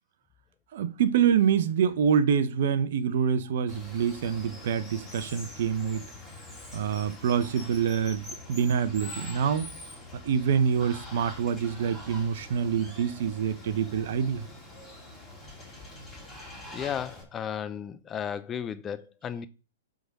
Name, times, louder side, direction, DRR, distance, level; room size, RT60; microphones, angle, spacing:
voice 1, 0.7-6.0 6.7-9.7 10.2-14.4, right 7 dB, 55° right, 1.0 m, -26 dB
Water, 3.7-17.2, left 1 dB, 5° left, 3.2 m, -44 dB
voice 2, 16.7-19.5, left 8 dB, 20° left, 0.6 m, -34 dB
8.0 x 4.0 x 6.1 m
figure-of-eight pair, 115°, 0 cm